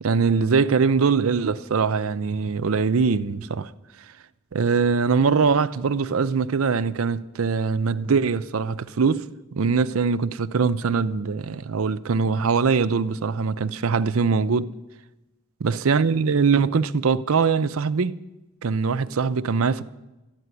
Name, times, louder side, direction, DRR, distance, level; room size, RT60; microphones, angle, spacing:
voice 1, 0.0-3.7 4.5-9.2 9.5-14.7 15.6-18.2 18.6-19.9, right 5 dB, 75° right, 0.6 m, -22 dB
13.5 x 9.2 x 9.7 m
head